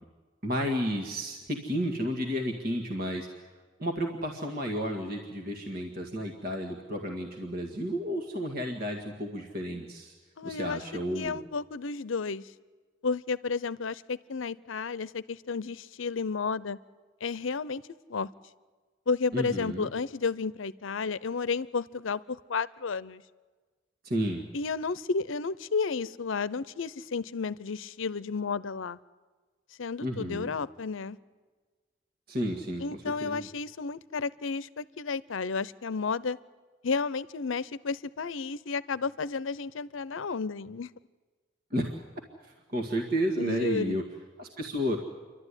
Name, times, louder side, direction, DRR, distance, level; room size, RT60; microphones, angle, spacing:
voice 1, 0.4-3.4 3.8-10.1 10.4-11.4 19.3-19.9 24.0-24.4 30.0-30.5 32.3-32.8 33.2-33.5 41.7-41.9 42.4-44.0 44.4-45.0, equal, 50° right, 2 dB, 1.8 m, -32 dB
voice 2, 10.4-10.8 11.1-12.4 13.0-16.8 17.2-17.8 18.1-18.3 19.1-23.2 24.5-29.0 29.8-31.2 32.8-36.4 36.8-40.9 43.4-44.0, left 4 dB, 85° left, 18 dB, 0.7 m, -32 dB
28.5 x 12.5 x 9.9 m, 1.4 s
head